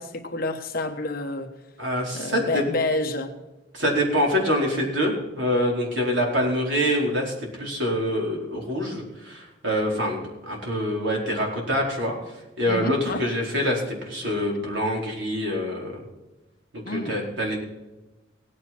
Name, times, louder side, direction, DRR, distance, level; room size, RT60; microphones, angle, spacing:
voice 1, 0.0-1.6 2.1-3.4 12.7-13.2 16.8-17.2, left 2 dB, 45° left, 5 dB, 1.3 m, -29 dB
voice 2, 1.8-2.6 3.7-12.1 12.6-16.0 16.7-17.6, equal, 65° right, -1 dB, 4.5 m, -25 dB
17.0 x 9.5 x 4.4 m, 1.0 s
head